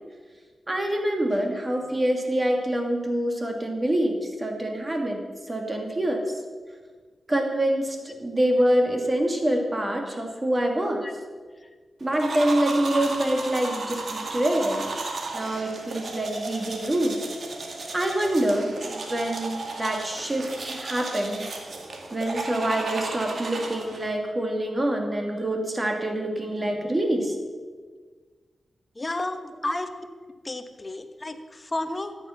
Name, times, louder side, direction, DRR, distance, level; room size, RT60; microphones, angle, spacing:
voice 1, 0.7-5.2 5.5-6.2 7.3-11.0 12.0-15.0 15.3-17.2 17.9-21.5 22.1-27.4, right 1 dB, 30° right, 3 dB, 2.5 m, -26 dB
sound 1, 12.1-24.1, right 3 dB, 65° right, 2.0 m, -34 dB
voice 2, 28.9-29.9 30.4-32.2, left 2 dB, 30° left, 8 dB, 1.2 m, -32 dB
13.5 x 9.3 x 5.9 m, 1.5 s
cardioid pair, 60°, 0 cm